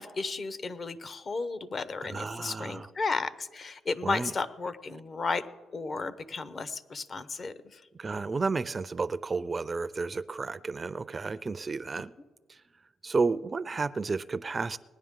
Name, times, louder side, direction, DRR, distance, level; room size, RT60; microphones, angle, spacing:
voice 1, 0.0-5.4 5.7-7.8, left 4 dB, 45° left, 14 dB, 0.8 m, -34 dB
voice 2, 2.1-2.9 4.0-4.3 8.0-12.1 12.5-12.6 13.0-14.8, right 4 dB, 35° right, 16 dB, 0.4 m, -32 dB
20.0 x 9.8 x 3.7 m, 1.3 s
cardioid pair, 75°, 0 cm